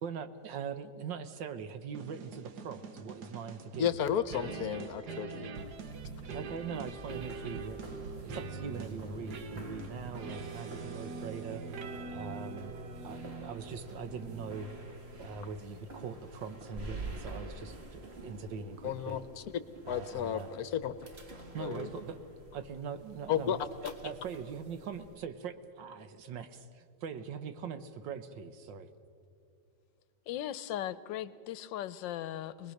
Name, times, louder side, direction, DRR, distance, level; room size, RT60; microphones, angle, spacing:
voice 1, 0.0-3.9 6.3-11.6 12.1-12.7 13.0-14.7 15.1-19.2 19.9-20.5 21.5-22.2 22.5-23.6 24.0-28.9, right 6 dB, 85° right, 10 dB, 1.7 m, -42 dB
sound 1, 1.9-15.4, right 4 dB, 65° right, 1.7 m, -43 dB
voice 2, 3.8-5.5 18.8-19.4 19.9-20.9 21.6-21.9 23.3-23.6 23.8-23.9, left 9 dB, 65° left, 13 dB, 1.2 m, -33 dB
sound 2, 5.5-25.2, right 2 dB, 35° right, 1.8 m, -49 dB
voice 3, 30.3-32.7, left 12 dB, 90° left, 16 dB, 1.4 m, -38 dB
24.5 x 20.5 x 6.5 m, 2.5 s
omnidirectional pair, 1.9 m